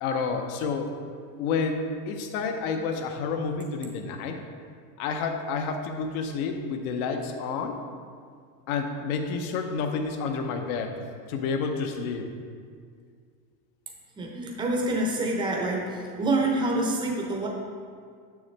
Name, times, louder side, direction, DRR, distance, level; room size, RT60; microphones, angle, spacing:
voice 1, 0.0-0.9 1.4-4.4 5.0-7.8 8.7-10.9 11.3-12.3, left 5 dB, 60° left, 5 dB, 0.8 m, -29 dB
voice 2, 14.2-15.8 16.2-17.5, right 2 dB, 10° right, -1 dB, 0.6 m, -26 dB
7.0 x 6.1 x 3.3 m, 2.1 s
supercardioid pair, 140°, 49 cm